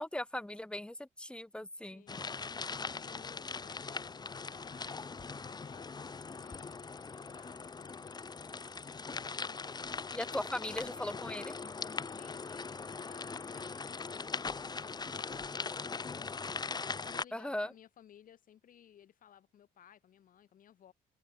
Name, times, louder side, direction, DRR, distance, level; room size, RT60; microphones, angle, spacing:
voice 1, 0.0-2.0 10.1-11.6 17.3-17.7, left 1 dB, 5° left, 2.1 m, -38 dB
voice 2, 1.9-8.1 9.0-9.7 12.1-16.3 16.8-20.9, left 10 dB, 55° left, 7.3 m, -60 dB
sound 1, 2.1-17.2, left 4 dB, 25° left, 2.3 m, -41 dB
cardioid pair, 110°, 17 cm